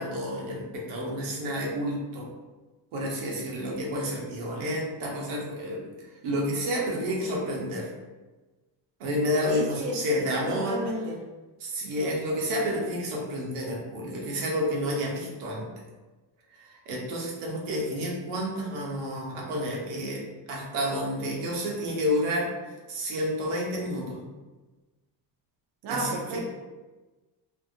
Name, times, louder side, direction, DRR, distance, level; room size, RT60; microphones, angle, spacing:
voice 1, 0.0-2.3 2.9-5.8 6.2-7.9 9.0-10.8 11.6-15.7 16.5-20.2 20.5-22.5 22.9-24.2 25.9-26.4, equal, 90° right, -2 dB, 1.0 m, -30 dB
voice 2, 9.5-9.9 10.5-11.2 25.8-26.4, right 1 dB, 60° right, -2 dB, 0.6 m, -32 dB
2.7 x 2.6 x 2.6 m, 1.2 s
cardioid pair, 120°, 49 cm